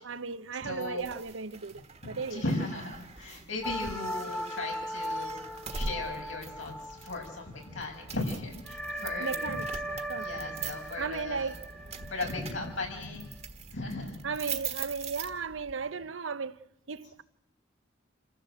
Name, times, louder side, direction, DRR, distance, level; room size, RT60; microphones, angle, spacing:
voice 1, 0.0-2.4 9.2-10.3 11.0-11.6 14.2-16.6 16.9-17.2, right 5 dB, 75° right, 0.8 m, -36 dB
voice 2, 0.6-1.0 2.0-5.4 5.7-9.6 10.2-11.5 12.0-13.3 13.7-14.5, left 2 dB, 85° left, 5.8 m, -37 dB
sound 1, 0.8-15.8, right 5 dB, 35° right, 1.5 m, -43 dB
sound 2, 3.6-7.6 7.9-8.0 8.6-13.3, equal, 5° left, 1.6 m, -38 dB
27.5 x 14.5 x 7.9 m
head